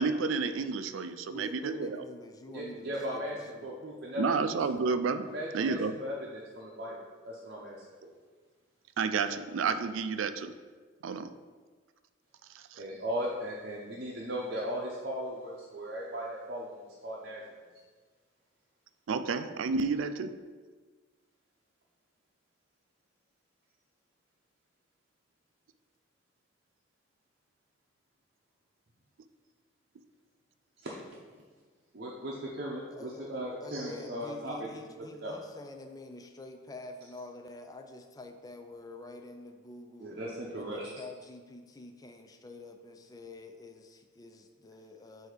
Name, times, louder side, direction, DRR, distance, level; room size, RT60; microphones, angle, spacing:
voice 1, 0.0-2.0 4.2-5.3 5.5-6.0 9.0-10.5 11.0-11.3 12.5-12.8 19.1-20.3, right 4 dB, 75° right, 11 dB, 0.4 m, -30 dB
voice 2, 1.3-3.7 32.9-40.1 40.5-45.3, left 2 dB, 20° left, 5 dB, 0.4 m, -47 dB
voice 3, 2.5-3.3 3.6-4.2 5.2-6.9 7.2-7.8 8.0-8.1 12.7-17.4 30.8-30.9 31.9-34.7 35.2-35.4 40.0-40.9, equal, 50° right, -5 dB, 0.7 m, -37 dB
7.9 x 2.7 x 4.9 m, 1.5 s
head